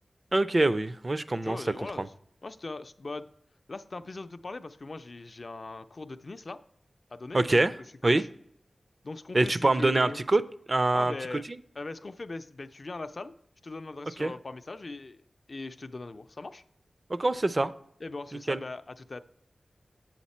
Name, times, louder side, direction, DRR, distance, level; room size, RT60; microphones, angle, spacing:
voice 1, 0.3-1.6 2.0-2.1 7.3-7.7 8.0-8.2 9.3-10.4 10.7-11.1 11.5-11.6 14.2-14.3 17.1-17.7 18.5-18.6, right 2 dB, 40° right, 14 dB, 0.4 m, -24 dB
voice 2, 1.4-2.1 2.4-3.3 3.7-6.6 7.1-7.4 8.0-8.3 9.0-10.2 10.9-11.5 11.8-13.3 13.6-15.2 15.5-16.6 18.0-19.2, left 3 dB, 55° left, 10 dB, 0.4 m, -40 dB
7.9 x 7.2 x 4.2 m, 0.68 s
wide cardioid pair, 55°, 0 cm